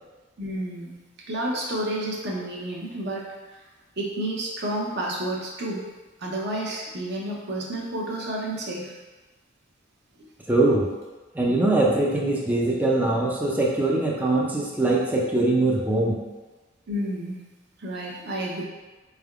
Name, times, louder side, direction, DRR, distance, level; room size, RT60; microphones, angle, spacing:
voice 1, 0.4-1.0 1.3-3.2 4.0-5.8 6.2-8.9 16.9-17.4 17.8-18.6, right 1 dB, 55° right, -3 dB, 0.8 m, -30 dB
voice 2, 10.5-10.9 11.3-16.2, right 2 dB, 10° right, -4 dB, 0.4 m, -22 dB
4.4 x 3.4 x 2.4 m, 1.2 s
head